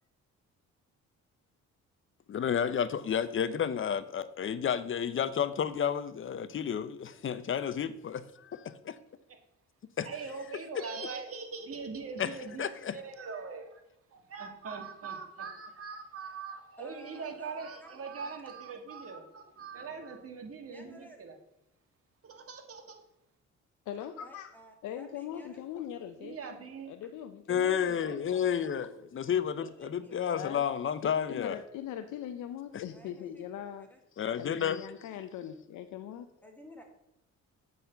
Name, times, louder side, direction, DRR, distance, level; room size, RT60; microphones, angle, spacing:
voice 1, 2.3-9.0 10.0-10.1 10.7-10.8 12.2-13.0 27.5-31.6 32.7-32.8 34.2-34.9, left 8 dB, 45° left, 14 dB, 0.7 m, -31 dB
voice 2, 10.0-13.8 14.1-21.3 22.2-23.0 26.2-26.9, right 5 dB, 50° right, 4 dB, 1.7 m, -42 dB
voice 3, 16.8-17.9 18.2-18.3 20.7-21.2 24.2-25.6 29.8-30.2 32.9-34.0 36.4-36.8, left 1 dB, 5° left, 2 dB, 2.0 m, -54 dB
voice 4, 23.9-24.6 24.8-26.4 26.9-28.2 29.6-29.7 30.3-30.6 31.0-33.9 34.3-36.5, left 10 dB, 80° left, 8 dB, 0.6 m, -41 dB
8.5 x 4.2 x 6.8 m, 0.86 s
cardioid pair, 90°, 30 cm